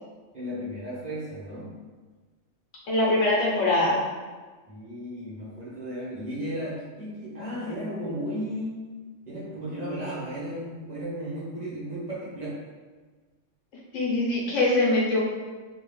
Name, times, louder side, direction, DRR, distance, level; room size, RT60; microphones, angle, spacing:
voice 1, 0.3-1.8 4.7-9.0 9.3-12.6, equal, 35° right, -9 dB, 1.0 m, -34 dB
voice 2, 2.9-4.0 13.9-15.2, left 2 dB, 75° left, -5 dB, 1.3 m, -23 dB
3.0 x 2.9 x 3.1 m, 1.4 s
omnidirectional pair, 1.3 m